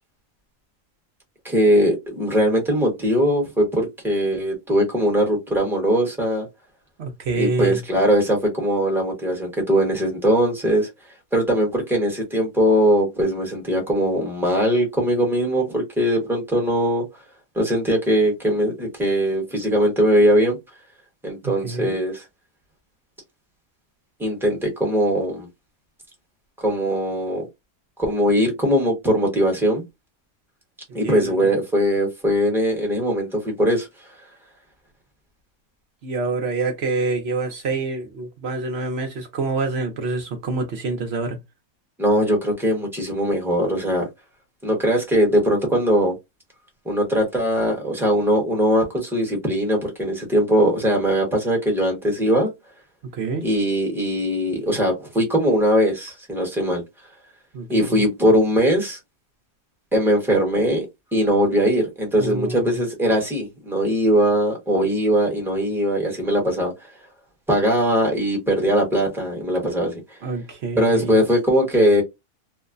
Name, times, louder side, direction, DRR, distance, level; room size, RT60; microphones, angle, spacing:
voice 1, 1.4-6.5 7.3-10.9 11.3-17.0 17.5-20.6 21.2-22.2 24.2-25.5 26.6-27.5 28.0-29.8 30.9-33.9 42.0-44.0 44.6-46.1 46.8-52.5 53.4-56.8 57.7-59.0 59.9-60.9 61.1-66.7 67.5-70.2 70.7-72.0, equal, ahead, 0.8 m, -20 dB
voice 2, 7.0-7.8 21.4-21.9 31.0-31.5 36.0-41.4 53.1-53.4 57.5-58.1 62.2-62.8 70.2-71.2, right 3 dB, 60° right, 0.7 m, -27 dB
3.0 x 2.0 x 2.4 m
omnidirectional pair, 1.6 m